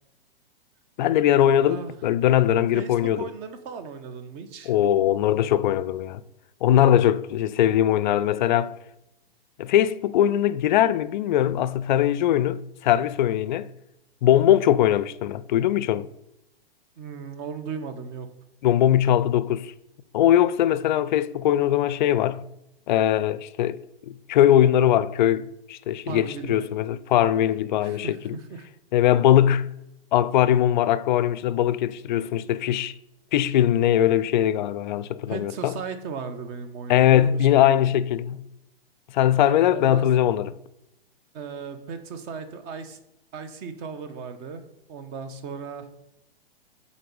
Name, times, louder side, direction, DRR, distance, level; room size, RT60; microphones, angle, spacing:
voice 1, 1.0-3.3 4.7-6.2 6.6-8.7 9.6-13.7 14.2-16.1 18.6-19.7 20.1-22.4 22.9-23.8 24.1-28.4 28.9-29.7 30.1-32.9 33.3-35.7 36.9-38.4 39.1-40.5, left 11 dB, 50° left, 0.4 m, -21 dB
voice 2, 1.6-1.9 2.7-4.7 17.0-18.3 26.1-26.6 27.8-28.7 35.3-37.8 39.7-40.1 41.3-43.0 43.3-44.6 44.9-45.9, right 5 dB, 30° right, 0.9 m, -36 dB
7.6 x 4.2 x 5.3 m
hypercardioid pair, 120°, 30 cm